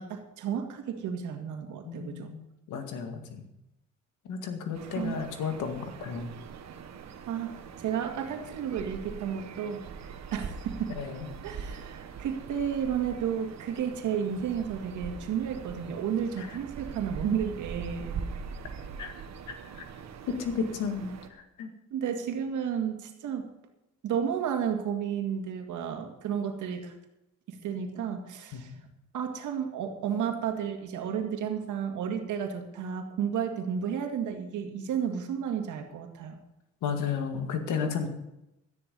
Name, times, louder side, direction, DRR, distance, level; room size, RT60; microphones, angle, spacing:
voice 1, 0.0-2.3 4.9-5.2 7.3-9.8 10.3-10.9 11.4-18.2 21.9-23.5 24.0-26.9 27.5-28.7 29.1-36.4, right 8 dB, 80° right, 4 dB, 2.1 m, -32 dB
voice 2, 1.8-3.5 4.3-6.3 10.9-11.3 16.4-16.6 19.0-19.1 19.5-19.9 20.3-21.7 28.5-28.6 36.8-38.1, left 6 dB, 80° left, 6 dB, 2.0 m, -33 dB
sound 1, 4.7-21.3, right 6 dB, 60° right, 1.5 m, -42 dB
13.0 x 10.5 x 5.4 m, 0.91 s
cardioid pair, 90°, 30 cm